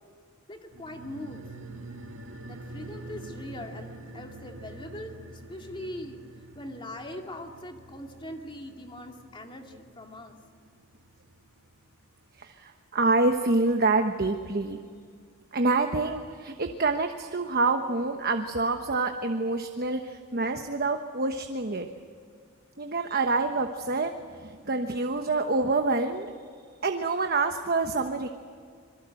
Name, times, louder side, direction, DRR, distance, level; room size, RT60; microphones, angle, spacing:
voice 1, 0.5-1.4 2.5-6.2 6.5-10.4, left 1 dB, 25° left, 3 dB, 2.3 m, -41 dB
sound 1, 0.7-11.6 11.9-12.0, right 2 dB, 70° right, 2.2 m, -46 dB
voice 2, 12.4-14.8 15.5-21.9 22.8-26.3 26.8-28.3, right 3 dB, 45° right, 6 dB, 1.1 m, -27 dB
26.5 x 22.5 x 7.8 m, 2.1 s
head